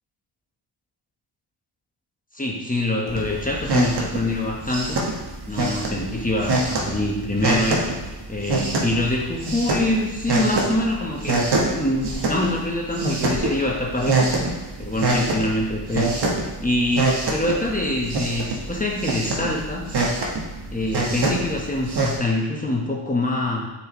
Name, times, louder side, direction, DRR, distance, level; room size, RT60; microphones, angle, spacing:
voice 1, 2.3-5.0 5.5-7.9 8.3-14.3 14.8-16.1 16.4-19.8 20.7-23.7, left 1 dB, 15° left, -2 dB, 1.4 m, -25 dB
sound 1, 3.1-22.2, right 2 dB, 60° right, 1.5 m, -25 dB
6.5 x 4.7 x 3.2 m, 1.1 s
cardioid pair, 60°, 46 cm